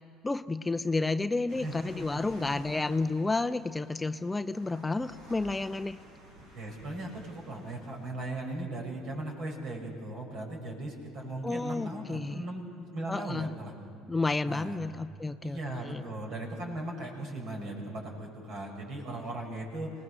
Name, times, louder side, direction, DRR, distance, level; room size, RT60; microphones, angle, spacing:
voice 1, 0.2-6.0 11.4-12.4 13.1-13.6 14.1-15.6 15.8-16.1, left 3 dB, 15° left, 10 dB, 0.6 m, -31 dB
voice 2, 1.5-2.2 2.5-2.6 6.5-13.7 14.4-14.8 15.4-19.9, right 1 dB, 60° right, 0 dB, 6.3 m, -38 dB
sound 1, 1.5-8.1, equal, 80° right, 6.4 m, -53 dB
26.5 x 19.0 x 6.5 m, 2.5 s
hypercardioid pair, 70°, 0 cm